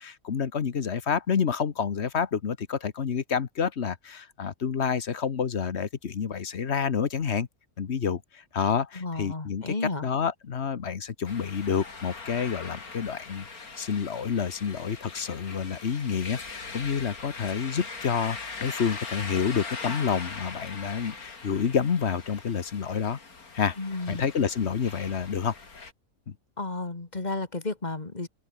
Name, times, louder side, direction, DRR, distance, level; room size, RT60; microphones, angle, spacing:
voice 1, 0.0-7.5 7.8-8.2 8.5-9.7 10.0-13.5 13.8-23.2 23.5-23.7 24.1-25.5 26.3-26.4, left 6 dB, 50° left, 1.4 m, -28 dB
voice 2, 8.9-10.1 23.8-24.2 26.6-28.3, left 3 dB, 30° left, 2.1 m, -32 dB
sound 1, 11.2-25.9, left 4 dB, 80° left, 3.4 m, -41 dB
open air
omnidirectional pair, 1.5 m